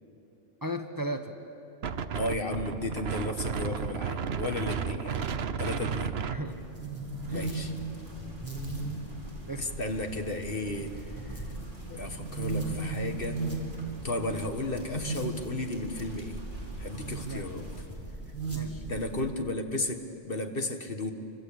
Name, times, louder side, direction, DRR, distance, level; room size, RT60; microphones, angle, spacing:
voice 1, 0.6-1.3 6.3-6.7 7.3-7.5 9.5-9.7 17.3-17.5 18.5-18.8, right 1 dB, 15° right, 6 dB, 1.1 m, -36 dB
Wind, 1.8-7.3, right 6 dB, 55° right, 1.0 m, -33 dB
voice 2, 2.1-5.2 5.6-6.2 7.3-7.7 8.2-8.3 9.6-10.9 11.3-11.4 11.9-13.4 14.0-16.4 16.8-17.6 18.8-20.0 20.3-21.1, left 2 dB, 45° left, 5 dB, 1.7 m, -33 dB
sound 1, 6.5-19.3, right 3 dB, 10° left, 4.0 m, -37 dB
sound 2, 7.2-17.8, equal, 40° right, 4.9 m, -48 dB
27.5 x 25.0 x 8.7 m, 2.9 s
omnidirectional pair, 1.3 m